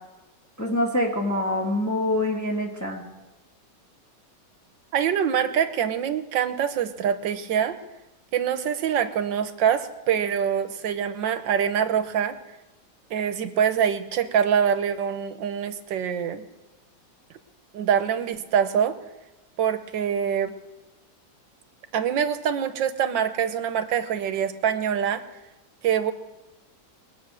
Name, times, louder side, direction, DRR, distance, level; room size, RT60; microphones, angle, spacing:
voice 1, 0.6-3.0, left 1 dB, 10° left, -2 dB, 1.8 m, -25 dB
voice 2, 4.9-7.8 8.3-12.4 13.1-16.4 17.7-19.0 19.6-20.5 21.9-25.2 25.8-26.1, right 8 dB, 90° right, 10 dB, 1.6 m, -24 dB
21.5 x 8.0 x 6.3 m, 1.1 s
omnidirectional pair, 1.9 m